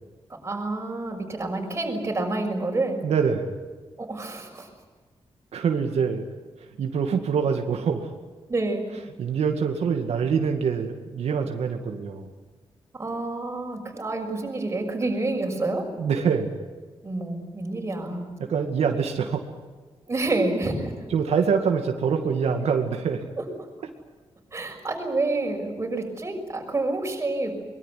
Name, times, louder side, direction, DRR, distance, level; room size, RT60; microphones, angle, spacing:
voice 1, 0.4-3.0 4.0-4.7 8.5-8.8 12.9-15.8 17.0-18.3 20.1-20.9 23.4-23.7 24.5-27.6, right 2 dB, 25° right, 1 dB, 6.2 m, -28 dB
voice 2, 3.0-3.5 5.5-6.2 6.8-8.1 9.2-12.3 16.0-16.5 18.4-19.4 21.1-23.2, right 6 dB, 85° right, 3 dB, 2.3 m, -25 dB
23.5 x 22.0 x 9.4 m, 1.4 s
wide cardioid pair, 155°, 10 cm